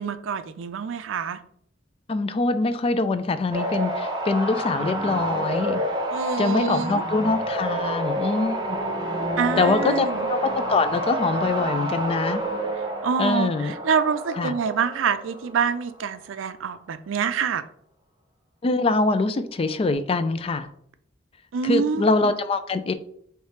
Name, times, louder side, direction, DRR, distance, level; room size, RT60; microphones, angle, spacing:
voice 1, 0.0-1.4 6.1-7.0 9.4-10.3 13.0-17.6 21.5-22.1, right 6 dB, 85° right, 12 dB, 0.4 m, -26 dB
voice 2, 2.1-5.8 6.4-8.8 9.6-12.4 13.2-13.7 14.3-14.5 18.6-20.7 21.6-22.9, left 3 dB, 30° left, 12 dB, 0.3 m, -24 dB
sound 1, 3.5-15.9 19.7-19.9, right 1 dB, 25° right, 0.8 m, -28 dB
4.9 x 3.2 x 3.1 m, 0.65 s
head